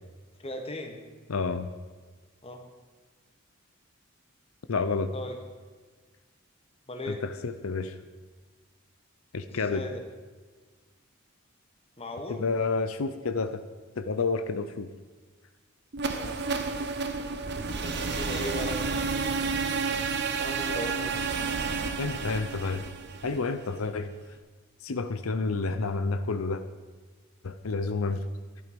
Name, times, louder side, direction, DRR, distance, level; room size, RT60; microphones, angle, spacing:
voice 1, 0.4-1.0 2.4-2.6 5.1-5.4 6.9-7.2 9.5-10.0 12.0-12.4 16.0-16.5 17.7-18.8 20.4-21.2, left 1 dB, 30° left, 4 dB, 1.5 m, -37 dB
voice 2, 1.3-1.7 4.7-5.1 7.1-8.0 9.3-9.8 12.3-13.6 14.0-14.9 22.0-22.9 23.2-24.1 24.8-26.6 27.4-28.2, left 4 dB, 85° left, 9 dB, 0.7 m, -29 dB
sound 1, 15.9-23.9, right 4 dB, 55° right, 0.9 m, -31 dB
12.0 x 11.5 x 5.3 m, 1.4 s
head